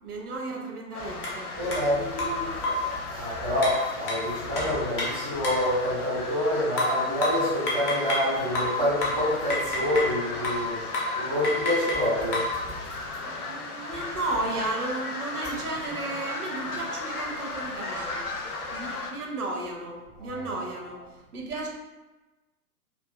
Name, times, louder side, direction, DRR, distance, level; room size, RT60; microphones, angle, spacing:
voice 1, 0.0-1.5 13.3-18.3 18.7-21.1 21.3-21.7, right 2 dB, 75° right, 0 dB, 0.6 m, -34 dB
sound 1, 0.9-19.1, left 3 dB, 75° left, 0.6 m, -36 dB
sound 2, 1.2-1.4 1.7-1.8 2.2-2.9 3.6-5.7 6.8-8.3 8.5-10.2 10.4-10.7 10.9-11.2 11.4-12.6, left 2 dB, 35° left, 0.6 m, -29 dB
voice 2, 1.6-10.8 11.1-12.5 20.2-20.5, left 1 dB, 5° right, -13 dB, 0.4 m, -27 dB
2.4 x 2.3 x 2.2 m, 1.1 s
figure-of-eight pair, 115°, 46 cm